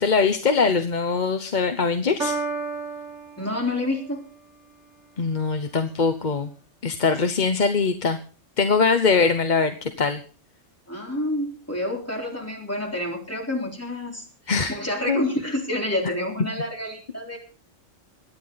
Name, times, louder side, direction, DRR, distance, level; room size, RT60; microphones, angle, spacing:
voice 1, 0.0-2.3 5.2-6.5 6.8-8.2 8.6-10.2 14.5-14.8 15.1-15.2 16.0-16.1, left 4 dB, 40° left, 7 dB, 1.0 m, -22 dB
Piano, 2.2-4.2, right 3 dB, 70° right, 2.3 m, -31 dB
voice 2, 3.4-4.2 10.9-14.3 14.7-17.4, left 1 dB, 10° left, -1 dB, 4.1 m, -28 dB
23.5 x 9.8 x 4.0 m, 0.37 s
omnidirectional pair, 1.3 m